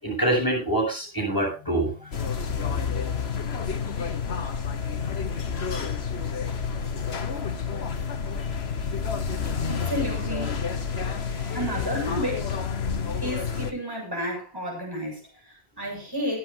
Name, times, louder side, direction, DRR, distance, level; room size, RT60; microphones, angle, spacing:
voice 1, 0.0-2.1 11.3-11.6 12.9-13.0, right 1 dB, 20° left, 7.9 m, -26 dB
sound 1, 2.1-13.7, left 6 dB, 75° left, 1.4 m, -29 dB
voice 2, 9.7-10.6 11.5-12.5 13.2-16.4, equal, 20° right, 7.0 m, -31 dB
22.0 x 10.0 x 2.8 m
omnidirectional pair, 1.1 m